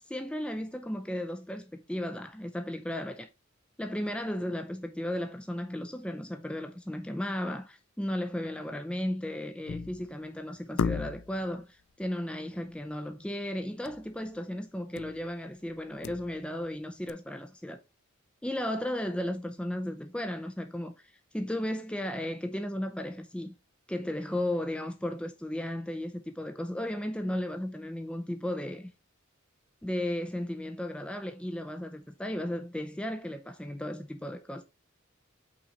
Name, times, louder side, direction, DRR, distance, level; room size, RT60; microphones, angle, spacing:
voice 1, 0.1-3.3 3.8-17.8 18.4-23.5 23.9-28.9 29.8-34.6, left 1 dB, 5° left, 0.5 m, -35 dB
sound 1, 9.7-10.1 10.8-11.4 13.8-14.1 14.3-14.4 15.0-15.3 15.7-16.7 17.1-17.2, left 5 dB, 65° left, 0.4 m, -34 dB
5.7 x 4.0 x 4.2 m
head